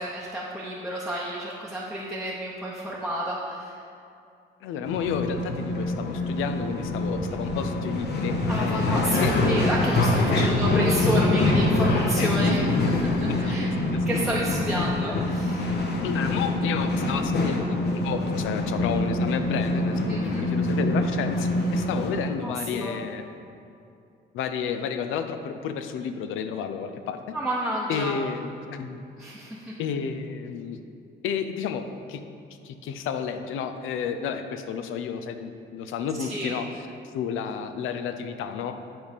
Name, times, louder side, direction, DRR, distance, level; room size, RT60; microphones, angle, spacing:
voice 1, 0.0-3.8 8.5-13.7 14.1-15.6 20.1-20.5 22.4-22.9 27.3-28.1 29.2-29.7 36.3-36.5, right 1 dB, ahead, -6 dB, 0.8 m, -30 dB
voice 2, 4.6-9.4 10.3-10.6 12.2-12.7 13.3-13.6 14.0-14.1 16.0-23.2 24.3-27.2 27.9-29.0 29.8-30.8 31.2-32.2 32.6-36.9 37.1-38.7, left 7 dB, 90° left, 8 dB, 0.5 m, -31 dB
sound 1, 4.8-22.2, left 2 dB, 60° left, 1.0 m, -25 dB
8.8 x 3.4 x 5.1 m, 2.5 s
cardioid pair, 90°, 20 cm